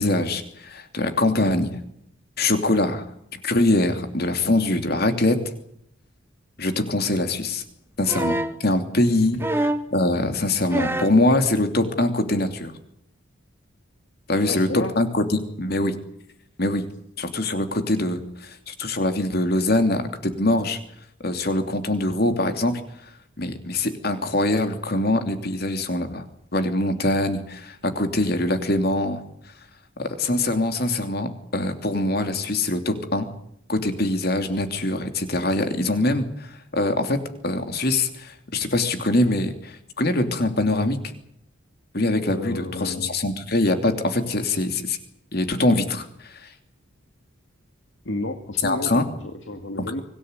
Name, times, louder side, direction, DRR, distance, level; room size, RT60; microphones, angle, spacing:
voice 1, 0.0-1.8 2.4-3.0 3.4-5.4 6.6-7.6 8.0-12.7 14.3-16.0 16.6-16.9 17.2-20.8 21.2-22.8 23.4-26.2 26.5-29.2 30.0-33.3 33.7-37.2 37.4-41.0 41.9-45.0 45.3-46.5 48.6-49.0 49.8-50.0, left 2 dB, 50° left, 7 dB, 2.9 m, -23 dB
sound 1, 8.1-8.6 9.4-9.9 10.7-11.2 12.4-12.5, right 1 dB, 10° right, 1.0 m, -25 dB
voice 2, 14.5-14.9 42.3-43.1 48.0-50.0, left 2 dB, 65° left, 6 dB, 2.1 m, -31 dB
24.5 x 18.0 x 9.7 m, 0.75 s
head